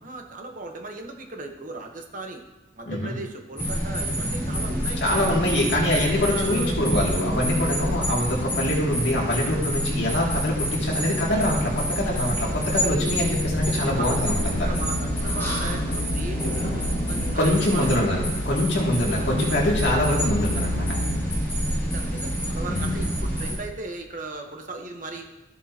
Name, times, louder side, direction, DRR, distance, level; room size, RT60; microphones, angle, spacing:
voice 1, 0.0-2.4 2.7-6.8 12.4-13.3 13.7-14.2 14.6-18.0 19.2-19.3 21.8-25.3, right 2 dB, 40° right, 3 dB, 0.9 m, -37 dB
voice 2, 2.9-3.2 5.0-14.7 17.4-21.0 22.7-23.0, left 1 dB, 65° left, -3 dB, 2.3 m, -24 dB
sound 1, 3.6-23.5, equal, 10° left, 2.5 m, -27 dB
sound 2, 13.9-17.4 17.7-17.8 18.5-21.2, equal, 80° left, 1.8 m, -32 dB
13.5 x 7.3 x 2.8 m, 1.1 s
head